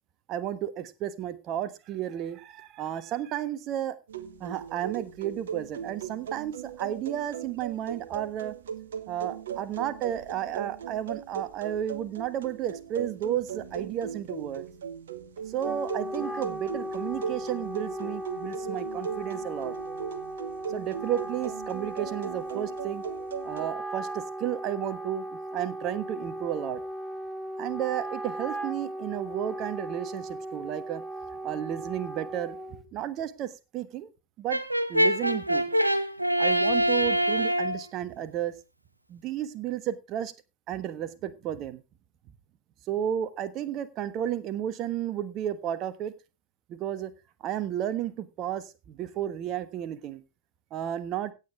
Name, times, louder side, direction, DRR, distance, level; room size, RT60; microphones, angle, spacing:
voice 1, 0.3-4.0 4.4-8.5 9.1-14.6 15.5-19.7 20.7-23.0 23.4-26.8 27.6-31.0 31.4-32.6 32.9-34.1 34.4-34.6 34.9-35.6 36.4-38.5 39.1-40.3 40.7-41.8 42.9-46.1 46.7-47.1 47.4-50.2 50.7-51.3, right 11 dB, 35° right, 12 dB, 1.3 m, -32 dB
sound 1, 4.1-23.7, right 8 dB, 65° right, 1.1 m, -38 dB
Wind instrument woodwind instrument, 15.4-32.8, right 1 dB, 10° right, 1.4 m, -37 dB
Brass instrument, 34.5-37.8, equal, 85° right, 0.9 m, -24 dB
16.5 x 8.5 x 3.5 m, 0.27 s
figure-of-eight pair, 90°, 0 cm